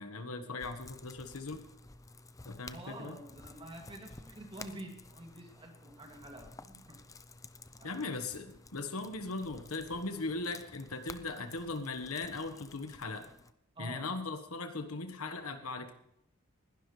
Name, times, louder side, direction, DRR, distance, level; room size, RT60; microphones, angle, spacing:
voice 1, 0.0-1.7 2.4-3.2 7.8-13.3 13.8-15.9, left 3 dB, 90° left, 7 dB, 1.4 m, -39 dB
sound 1, 0.6-13.5, left 3 dB, 15° left, 0.5 m, -53 dB
voice 2, 2.7-7.0 7.7-8.1 13.8-14.2, right 1 dB, 25° right, 2 dB, 2.4 m, -48 dB
20.0 x 12.0 x 3.3 m, 0.73 s
head